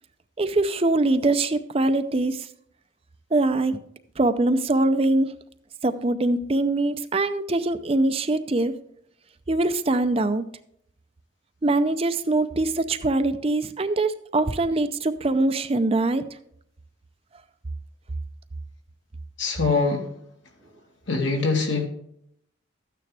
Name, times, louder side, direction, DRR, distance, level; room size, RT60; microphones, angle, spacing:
voice 1, 0.4-2.5 3.3-3.8 4.2-5.3 5.8-8.7 9.5-10.4 11.6-16.2, right 2 dB, 30° right, 10 dB, 0.5 m, -23 dB
voice 2, 19.4-20.1 21.1-21.9, left 4 dB, 70° left, 2 dB, 2.2 m, -23 dB
13.0 x 9.2 x 3.4 m, 0.71 s
head